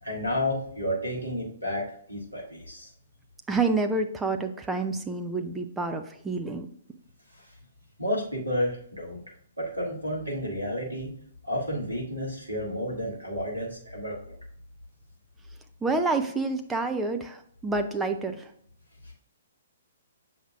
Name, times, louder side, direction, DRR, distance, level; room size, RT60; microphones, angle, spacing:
voice 1, 0.0-2.9 7.3-7.5 8.0-9.2 9.6-11.1 11.4-14.2 19.0-19.1, equal, 85° right, -2 dB, 1.9 m, -31 dB
voice 2, 3.5-6.7 15.8-18.5, right 3 dB, 10° right, 5 dB, 0.5 m, -28 dB
7.1 x 5.8 x 2.4 m, 0.63 s
figure-of-eight pair, 120°, 0 cm